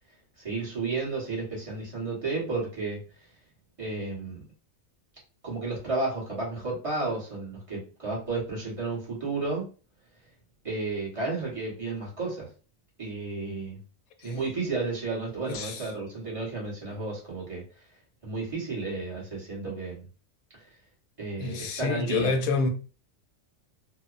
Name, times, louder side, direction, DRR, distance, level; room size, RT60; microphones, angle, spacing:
voice 1, 0.4-3.0 3.8-4.5 5.4-9.7 10.6-12.5 13.0-13.8 14.2-17.6 18.2-20.0 20.5-20.7 21.2-22.3, right 3 dB, 25° right, 1.1 m, -32 dB
voice 2, 15.5-15.9 16.9-17.0 21.4-22.7, left 4 dB, 85° left, 1.0 m, -28 dB
2.9 x 2.1 x 2.4 m
omnidirectional pair, 1.4 m